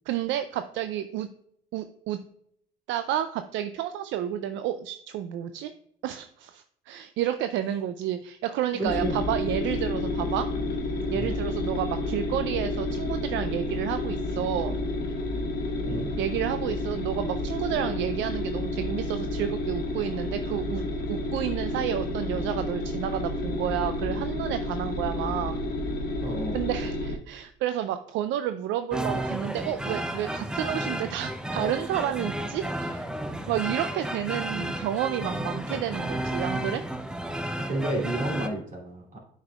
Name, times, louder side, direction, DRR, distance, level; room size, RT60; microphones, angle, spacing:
voice 1, 0.1-1.3 1.7-2.2 2.9-5.7 6.0-10.5 11.1-14.8 16.2-20.8 21.1-25.5 26.5-33.1 33.5-36.8, right 11 dB, 70° right, 10 dB, 0.4 m, -30 dB
voice 2, 8.7-9.2 11.1-11.3 15.9-16.1 26.2-26.6 37.6-39.2, right 1 dB, 40° right, -2 dB, 2.7 m, -31 dB
sound 1, 8.9-27.1, left 2 dB, 50° left, 1.4 m, -30 dB
sound 2, 28.9-38.5, right 1 dB, 5° right, 0.6 m, -32 dB
8.8 x 5.4 x 2.3 m, 0.69 s
supercardioid pair, 70°, 20 cm